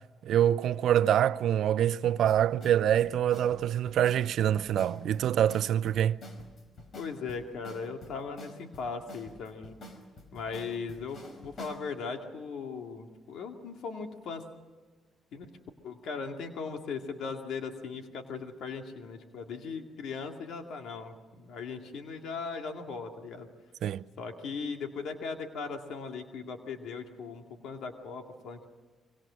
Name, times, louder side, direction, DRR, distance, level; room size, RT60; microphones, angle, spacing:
voice 1, 0.2-6.2 23.8-24.0, right 10 dB, 75° right, 0.6 m, -25 dB
sound 1, 2.3-11.9, left 1 dB, 55° left, 4.8 m, -48 dB
voice 2, 7.0-9.8 10.3-14.4 15.3-15.5 15.8-23.5 24.2-28.7, left 5 dB, 75° left, 2.3 m, -38 dB
25.5 x 24.0 x 6.3 m
cardioid pair, 90°, 0 cm